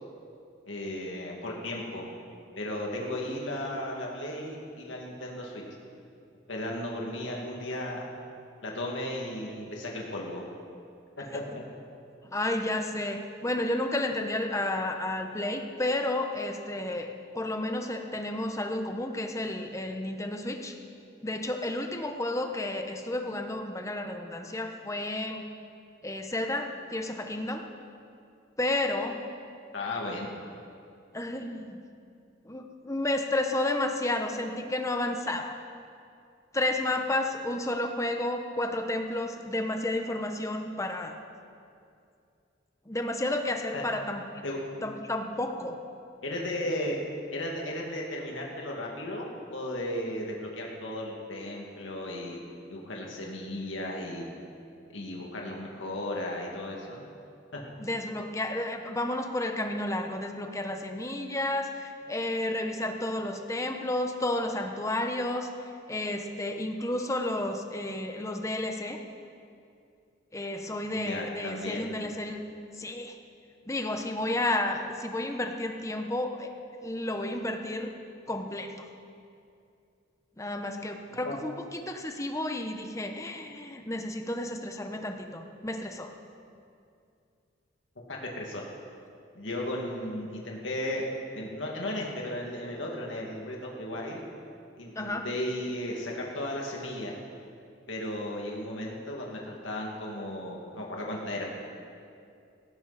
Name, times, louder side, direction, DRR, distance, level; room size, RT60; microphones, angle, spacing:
voice 1, 0.7-2.0 2.5-5.6 6.5-8.1 8.6-10.4 11.2-11.4 29.7-30.3 43.7-43.8 44.4-44.6 46.2-47.0 47.3-52.4 52.7-54.2 54.9-57.0 57.5-57.6 70.9-71.9 81.2-81.3 88.1-88.6 89.3-91.0 91.3-94.2 94.8-97.1 97.9-101.5, left 1 dB, 85° left, -2 dB, 2.3 m, -35 dB
voice 2, 12.3-20.8 21.2-25.5 26.0-27.6 28.6-29.2 31.1-31.8 32.4-35.6 36.5-41.2 42.9-44.2 44.8-45.8 57.8-65.5 65.9-69.0 70.3-72.5 72.7-73.2 73.7-76.5 76.8-77.9 78.3-78.9 80.4-86.1 94.9-95.3, left 1 dB, 15° left, 4 dB, 1.1 m, -31 dB
17.5 x 15.0 x 4.3 m, 2.5 s
head